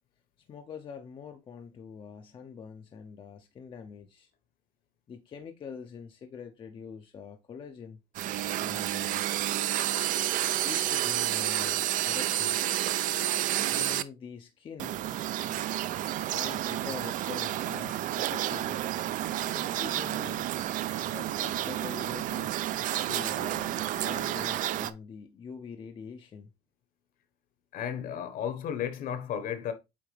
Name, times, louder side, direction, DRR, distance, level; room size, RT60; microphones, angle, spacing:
voice 1, 0.5-4.3 5.1-8.0 8.6-9.3 10.6-12.6 13.7-15.0 16.3-18.9 19.5-20.5 21.0-22.5 23.0-26.5, left 6 dB, 25° left, 0.6 m, -44 dB
So de la casa, 8.1-14.0 14.8-24.9, right 13 dB, 45° right, 0.5 m, -30 dB
voice 2, 27.7-29.7, left 9 dB, 50° left, 1.1 m, -33 dB
8.6 x 3.4 x 3.3 m
cardioid pair, 140°, 19 cm